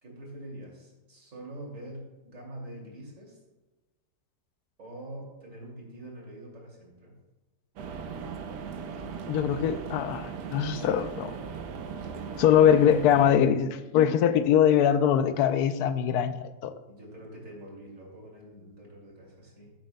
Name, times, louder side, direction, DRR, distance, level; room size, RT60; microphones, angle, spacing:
voice 1, 0.0-3.4 4.8-7.2 16.9-19.7, right 1 dB, 50° right, 3.0 m, -44 dB
sound 1, 7.8-13.3, right 6 dB, 80° right, 1.4 m, -38 dB
voice 2, 9.3-11.4 12.4-16.7, left 9 dB, 70° left, 1.1 m, -22 dB
15.5 x 7.6 x 2.2 m
omnidirectional pair, 1.8 m